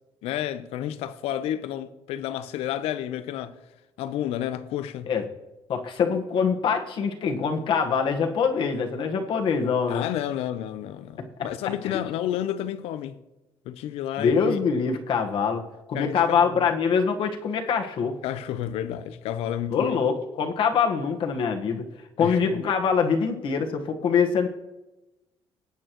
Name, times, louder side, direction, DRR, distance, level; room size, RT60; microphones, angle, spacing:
voice 1, 0.2-3.6 4.0-5.1 9.9-13.1 13.6-14.6 15.9-16.7 18.2-20.0 22.2-22.6, left 11 dB, 80° left, 0.7 m, -31 dB
voice 2, 5.7-10.0 11.2-11.3 11.9-12.0 14.2-15.6 15.9-18.2 19.7-21.8 22.2-24.5, left 6 dB, 60° left, 1.4 m, -24 dB
19.0 x 8.5 x 3.1 m
cardioid pair, 110°, 10 cm